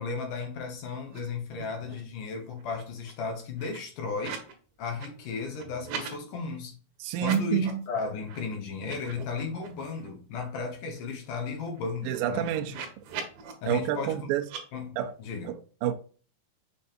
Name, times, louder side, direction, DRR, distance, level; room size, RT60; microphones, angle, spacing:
voice 1, 0.0-4.5 4.8-6.7 7.2-12.5 13.6-14.3 14.7-15.5, left 5 dB, 65° left, 2.3 m, -35 dB
sound 1, 1.1-1.2 1.5-2.1 2.5-4.5 4.8-6.2 7.1-7.9 8.3-8.4 8.8-10.1 10.5-10.6 10.8-13.5 14.4-14.6, right 6 dB, 65° right, 2.6 m, -42 dB
voice 2, 7.0-7.9 12.0-12.8 13.7-14.4 15.0-15.1 15.5-15.9, right 10 dB, 85° right, 2.0 m, -28 dB
7.0 x 5.3 x 2.6 m
omnidirectional pair, 5.0 m